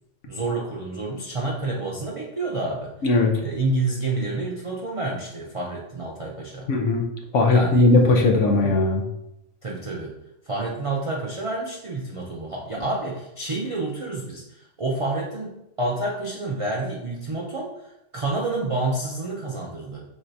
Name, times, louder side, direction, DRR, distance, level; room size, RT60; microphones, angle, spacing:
voice 1, 0.3-2.9 3.4-6.7 7.5-7.9 9.6-10.1 10.4-20.0, right 2 dB, 55° right, -3 dB, 0.3 m, -29 dB
voice 2, 6.7-7.0 7.3-9.0, left 2 dB, 65° left, 1 dB, 1.1 m, -18 dB
4.4 x 4.1 x 2.6 m, 0.87 s
omnidirectional pair, 1.4 m